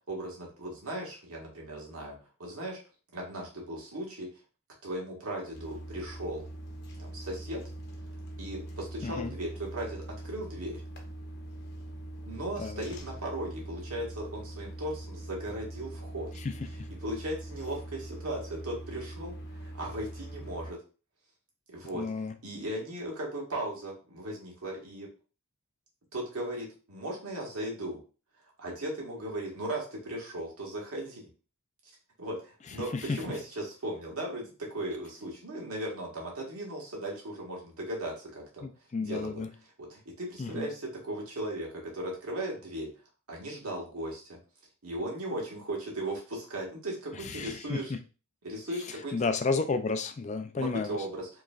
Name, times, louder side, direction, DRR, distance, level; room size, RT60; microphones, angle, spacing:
voice 1, 0.1-2.8 3.1-4.3 4.8-6.4 7.0-7.6 8.4-10.8 12.3-16.3 17.0-20.8 21.7-22.1 22.4-25.1 26.1-28.0 28.4-31.3 31.8-31.9 32.2-39.4 39.8-43.0 43.3-44.4 44.8-47.9 48.4-49.3 50.5-51.4, right 1 dB, 85° right, -2 dB, 1.6 m, -37 dB
sound 1, 5.5-20.7, right 1 dB, 50° left, 0.8 m, -42 dB
voice 2, 21.9-22.3 32.9-33.2 38.6-39.5 40.4-40.7 47.2-47.8 49.1-51.0, left 4 dB, 30° left, 9 dB, 0.3 m, -32 dB
4.8 x 3.1 x 2.4 m, 0.35 s
head